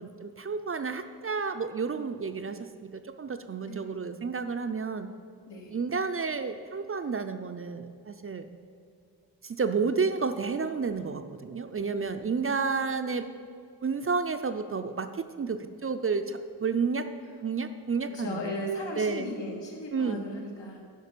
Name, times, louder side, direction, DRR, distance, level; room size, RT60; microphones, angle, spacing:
voice 1, 0.0-5.1 5.7-8.5 9.4-13.3 13.8-17.1 17.4-19.3 19.9-20.2, right 5 dB, 35° right, 9 dB, 0.4 m, -31 dB
voice 2, 5.5-5.8 12.3-12.4 18.0-20.8, left 1 dB, 85° left, 0 dB, 1.9 m, -37 dB
11.0 x 5.3 x 6.7 m, 2.3 s
wide cardioid pair, 140°, 43 cm